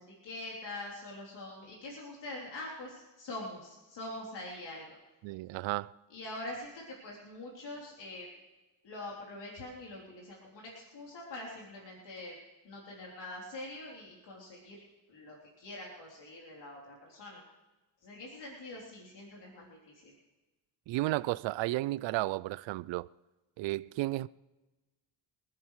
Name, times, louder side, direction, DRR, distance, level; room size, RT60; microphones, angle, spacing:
voice 1, 0.0-5.0 6.1-8.3 8.8-12.4 12.6-14.8 15.1-17.4 18.0-20.1, left 2 dB, 70° left, 3.6 m, -44 dB
voice 2, 5.2-5.9 20.9-23.1 23.6-24.3, right 18 dB, 85° right, 0.5 m, -33 dB
26.0 x 10.5 x 3.2 m
cardioid pair, 80°, 43 cm